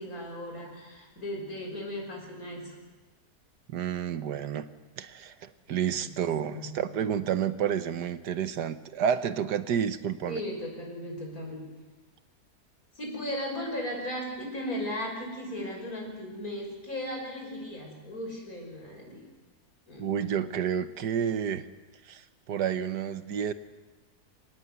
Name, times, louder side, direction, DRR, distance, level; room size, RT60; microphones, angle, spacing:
voice 1, 0.0-2.8 6.0-6.8 10.3-11.7 13.0-19.2 19.9-20.1, equal, 60° left, 0 dB, 6.1 m, -36 dB
voice 2, 3.7-4.6 5.0-10.4 20.0-21.6 22.0-23.5, right 8 dB, 90° right, 11 dB, 1.6 m, -30 dB
25.5 x 18.5 x 8.1 m, 1.2 s
omnidirectional pair, 1.7 m